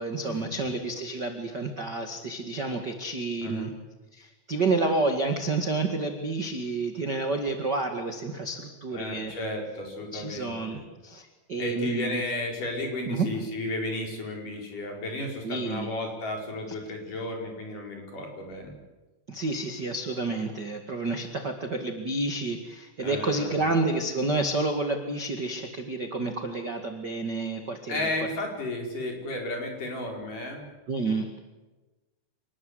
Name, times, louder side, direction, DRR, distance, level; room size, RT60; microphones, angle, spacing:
voice 1, 0.0-3.7 4.1-9.3 10.1-12.2 13.1-13.3 15.4-15.9 19.3-28.1 30.9-31.4, right 3 dB, 60° right, 5 dB, 1.1 m, -29 dB
voice 2, 3.4-3.7 8.9-10.8 11.6-18.7 23.0-23.6 27.9-30.7, left 1 dB, 45° left, 1 dB, 6.2 m, -33 dB
27.5 x 20.5 x 8.1 m, 1.2 s
omnidirectional pair, 5.4 m